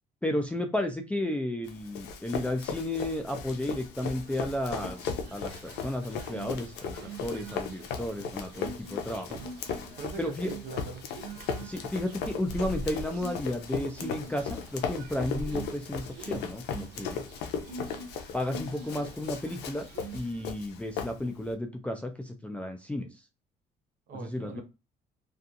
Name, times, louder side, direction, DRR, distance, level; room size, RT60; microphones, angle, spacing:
voice 1, 0.2-7.0 7.2-9.4 10.2-10.5 11.6-17.2 18.3-19.9 20.1-23.1 24.2-24.6, left 1 dB, 5° left, 0.4 m, -33 dB
Run, 1.6-21.5, left 6 dB, 85° left, 0.5 m, -37 dB
sound 1, 3.9-20.4, right 3 dB, 80° right, 0.5 m, -45 dB
voice 2, 10.0-11.1 24.1-24.6, right 4 dB, 55° right, 0.8 m, -41 dB
2.4 x 2.3 x 2.6 m
cardioid pair, 110°, 17 cm